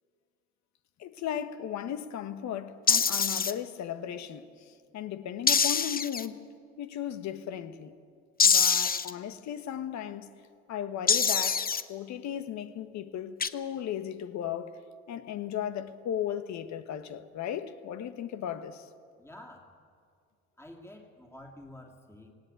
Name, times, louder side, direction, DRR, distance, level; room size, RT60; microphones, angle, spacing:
voice 1, 1.0-6.4 6.8-7.9 8.4-10.3 10.7-14.8 15.1-18.9, left 10 dB, 70° left, 1.4 m, -36 dB
sound 1, 2.9-3.5 5.5-6.3 8.4-9.1 11.1-11.8 13.4-13.5, left 6 dB, 30° left, 1.0 m, -24 dB
voice 2, 19.2-19.7 20.6-22.3, left 1 dB, 10° left, 2.6 m, -49 dB
18.0 x 17.5 x 9.0 m
supercardioid pair, 80°, 29 cm